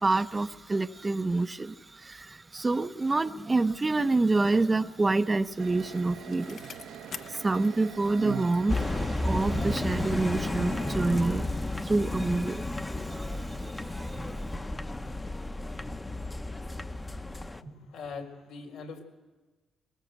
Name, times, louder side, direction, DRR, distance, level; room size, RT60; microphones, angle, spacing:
voice 1, 0.0-6.8 7.2-14.5, right 3 dB, 20° right, 0.8 m, -28 dB
Bicycle, 5.0-9.7 10.0-10.1, left 6 dB, 55° left, 1.0 m, -49 dB
sound 1, 5.6-11.0, right 9 dB, 90° right, 1.3 m, -42 dB
sound 2, 8.7-17.6, left 2 dB, 15° left, 1.0 m, -32 dB
voice 2, 17.4-19.0, left 4 dB, 85° left, 4.3 m, -42 dB
23.0 x 21.0 x 8.1 m
cardioid pair, 90°, 0 cm